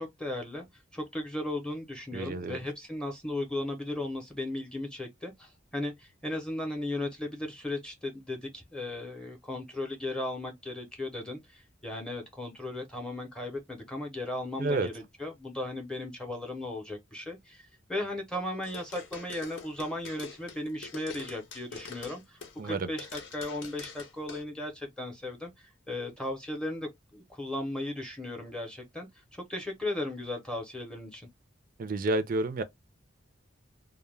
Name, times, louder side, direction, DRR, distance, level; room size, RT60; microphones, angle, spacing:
voice 1, 0.0-31.3, left 1 dB, 5° left, 0.6 m, -36 dB
voice 2, 2.1-2.6 14.6-14.9 22.6-22.9 31.8-32.6, right 2 dB, 45° right, 0.4 m, -29 dB
sound 1, 18.6-22.7 23.0-24.4, left 5 dB, 70° left, 0.7 m, -44 dB
2.2 x 2.0 x 3.1 m
head